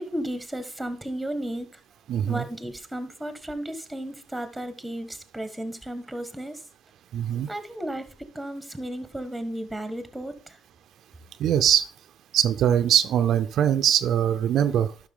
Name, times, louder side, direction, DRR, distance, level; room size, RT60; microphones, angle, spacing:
voice 1, 0.0-1.8 2.3-6.6 7.5-10.6, right 1 dB, 5° right, 10 dB, 1.4 m, -34 dB
voice 2, 2.1-2.4 7.1-7.5 11.4-11.9 12.3-15.1, right 10 dB, 75° right, 10 dB, 0.4 m, -22 dB
11.5 x 5.9 x 3.6 m, 0.38 s
cardioid pair, 90°, 0 cm